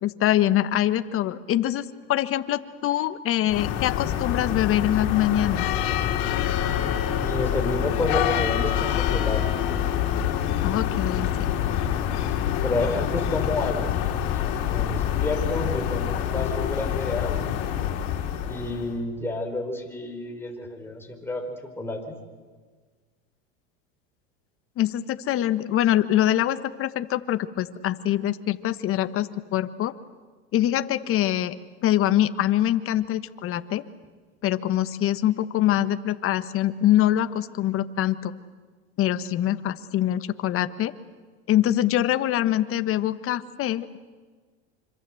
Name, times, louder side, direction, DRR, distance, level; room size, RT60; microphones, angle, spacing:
voice 1, 0.0-1.8 2.1-5.6 10.6-11.5 24.8-29.9 30.5-31.5 31.8-33.8 34.4-38.3 39.0-40.9 41.5-44.0, left 12 dB, 40° left, 12 dB, 1.4 m, -24 dB
sound 1, 3.5-19.0, left 10 dB, 60° left, 4.3 m, -26 dB
voice 2, 7.1-9.6 11.5-12.0 12.6-13.9 14.3-17.5 18.5-22.2, left 2 dB, 5° left, 2 dB, 5.2 m, -30 dB
26.5 x 25.5 x 7.9 m, 1.5 s
supercardioid pair, 110°, 33 cm